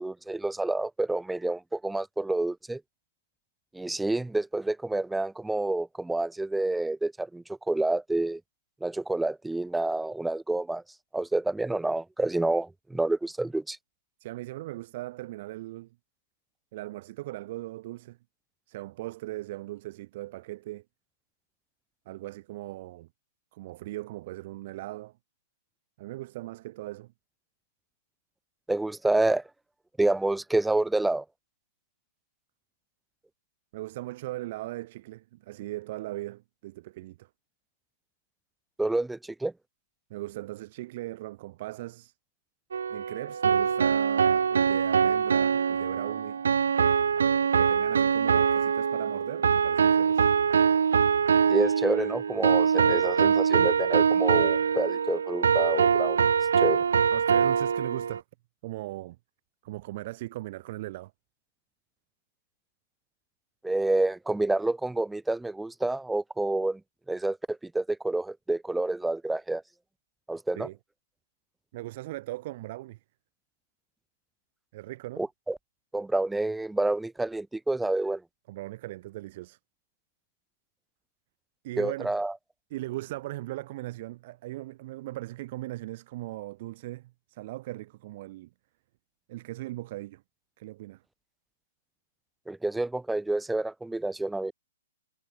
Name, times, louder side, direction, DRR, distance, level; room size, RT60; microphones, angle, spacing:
voice 1, 0.0-2.8 3.7-8.4 8.8-10.8 11.1-13.8 28.7-29.4 30.0-31.2 38.8-39.5 51.5-56.2 56.6-56.8 63.6-66.8 67.1-69.6 70.3-70.7 75.2-75.6 75.9-78.2 81.8-82.3 92.5-94.5, right 2 dB, 5° right, 0.7 m, -28 dB
voice 2, 14.2-16.0 16.7-18.2 18.7-20.8 22.1-23.1 23.5-25.2 26.0-27.1 33.7-37.3 40.1-42.1 42.9-46.4 47.5-50.3 57.1-58.2 58.6-59.2 59.6-61.1 70.6-70.8 71.7-73.0 74.7-75.2 78.5-79.6 81.6-82.1 82.7-88.5 89.3-90.2 90.6-91.0, right 17 dB, 45° right, 3.8 m, -39 dB
sound 1, 42.7-58.2, right 6 dB, 75° right, 1.9 m, -23 dB
hypercardioid pair, 140°, 0 cm